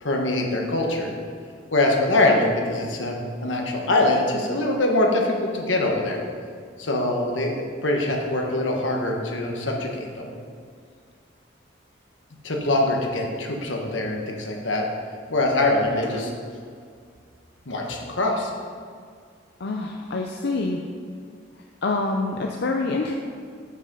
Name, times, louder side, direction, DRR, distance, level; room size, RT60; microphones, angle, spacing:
voice 1, 0.0-1.1 1.7-6.2 6.8-10.3 12.4-14.8 15.3-16.3 17.7-18.5, left 2 dB, 80° left, 0 dB, 1.4 m, -23 dB
voice 2, 19.6-20.8 21.8-23.1, left 3 dB, 60° left, 2 dB, 0.6 m, -26 dB
7.8 x 6.4 x 5.4 m, 2.1 s
head